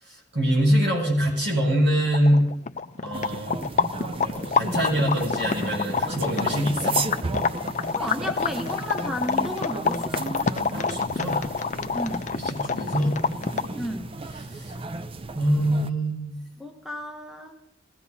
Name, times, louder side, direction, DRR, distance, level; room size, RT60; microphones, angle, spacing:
voice 1, 0.0-2.5 3.0-3.6 4.1-7.1 10.7-11.5 12.3-13.2 14.5-14.8 15.3-16.4, equal, 70° right, -3 dB, 7.4 m, -24 dB
sound 1, 1.8-1.9 2.1-13.8, left 5 dB, 40° left, 0.5 m, -27 dB
sound 2, 3.1-15.9, right 3 dB, 30° right, 0.5 m, -34 dB
voice 2, 7.9-10.3 11.9-12.3 13.8-14.1 16.6-17.6, equal, ahead, 3 dB, 0.9 m, -33 dB
20.5 x 16.0 x 2.7 m, 0.83 s
head